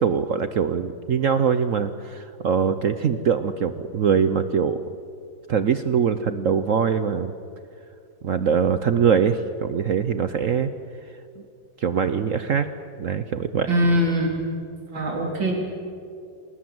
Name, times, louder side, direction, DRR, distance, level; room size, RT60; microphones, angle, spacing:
voice 1, 0.0-4.8 5.5-7.3 8.2-10.7 11.8-12.7 13.0-13.7, right 7 dB, 60° right, 11 dB, 0.9 m, -22 dB
voice 2, 13.7-14.3 14.9-15.5, equal, 80° right, -1 dB, 4.6 m, -21 dB
27.5 x 19.0 x 7.9 m, 2.4 s
omnidirectional pair, 2.1 m